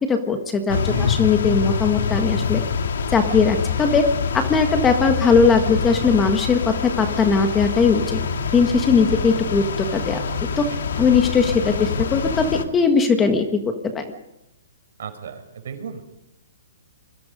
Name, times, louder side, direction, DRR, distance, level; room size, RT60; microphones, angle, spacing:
voice 1, 0.0-2.6 3.1-4.1 4.3-8.2 8.5-10.2 10.6-10.7 11.0-14.1, left 5 dB, 10° left, 6 dB, 1.5 m, -19 dB
sound 1, 0.7-12.7, left 6 dB, 70° left, 2.3 m, -25 dB
voice 2, 0.7-1.4 10.7-11.0 15.0-16.0, right 7 dB, 65° right, 6 dB, 5.3 m, -34 dB
27.5 x 22.0 x 5.3 m, 0.93 s
hypercardioid pair, 160°, 0 cm